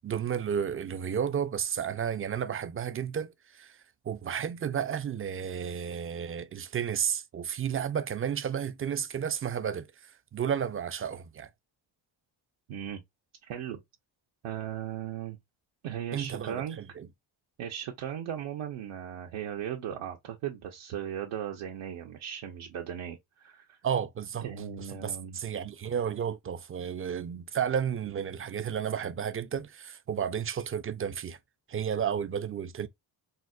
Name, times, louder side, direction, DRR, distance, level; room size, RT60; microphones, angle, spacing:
voice 1, 0.0-3.8 4.1-11.5 16.1-17.1 23.8-24.5 24.8-31.4 31.7-32.9, right 8 dB, 30° right, 0.3 m, -32 dB
voice 2, 12.7-13.0 13.5-13.8 14.4-15.4 15.8-16.8 17.6-23.8 24.4-25.4, right 9 dB, 75° right, 0.7 m, -37 dB
4.0 x 2.0 x 2.2 m
cardioid pair, 65°, 49 cm